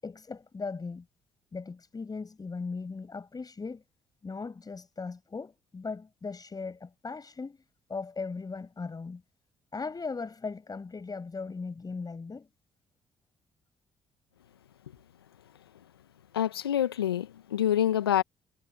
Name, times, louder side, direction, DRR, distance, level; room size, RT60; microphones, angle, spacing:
voice 1, 0.0-1.1 1.5-3.8 4.2-7.6 7.9-9.2 9.7-12.5, left 4 dB, 30° left, 7.5 m, -38 dB
voice 2, 16.3-18.2, left 10 dB, 85° left, 1.7 m, -26 dB
figure-of-eight pair, 45°, 12 cm